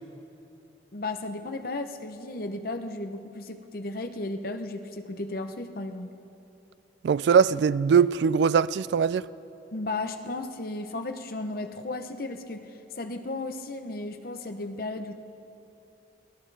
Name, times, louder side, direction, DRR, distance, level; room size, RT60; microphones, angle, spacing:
voice 1, 0.9-6.1 9.7-12.7 13.0-15.1, left 2 dB, 55° left, 0.8 m, -34 dB
voice 2, 7.0-9.3, right 6 dB, 75° right, 0.3 m, -21 dB
22.5 x 17.0 x 3.3 m
head